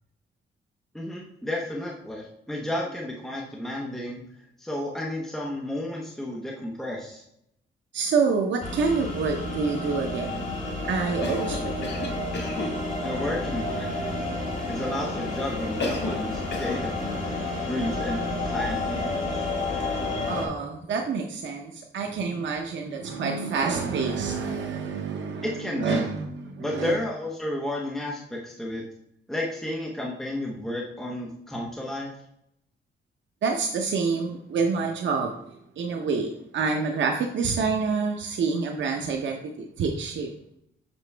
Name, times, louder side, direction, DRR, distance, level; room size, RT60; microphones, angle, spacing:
voice 1, 0.9-4.2 4.6-7.2 13.0-14.4 14.7-17.1 17.7-18.2 18.4-19.5 25.4-26.0 26.6-28.8 29.3-32.1, left 1 dB, ahead, -2 dB, 0.8 m, -32 dB
voice 2, 7.9-10.4 10.9-11.9 20.3-27.0 33.4-35.4 35.8-40.3, right 5 dB, 75° right, 2 dB, 0.8 m, -27 dB
sound 1, 8.6-20.5, left 2 dB, 40° left, 1.9 m, -30 dB
Cough, 11.2-12.8 15.8-16.3 16.5-16.9, left 3 dB, 65° left, 1.2 m, -32 dB
7.1 x 5.9 x 3.3 m, 0.76 s
wide cardioid pair, 175°, 19 cm